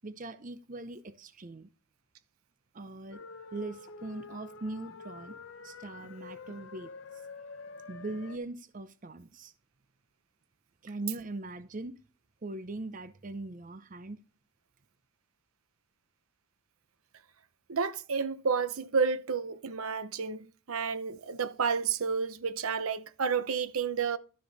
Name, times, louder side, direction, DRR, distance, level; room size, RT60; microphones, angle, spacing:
voice 1, 0.0-1.7 2.7-3.2 3.5-5.4 5.6-6.9 7.9-9.5 10.8-11.9 12.4-14.2, right 2 dB, 35° right, 0.6 m, -40 dB
sound 1, 3.1-8.4, left 4 dB, 60° left, 0.8 m, -47 dB
voice 2, 17.7-24.2, right 5 dB, 80° right, 0.8 m, -31 dB
12.0 x 6.3 x 4.0 m
head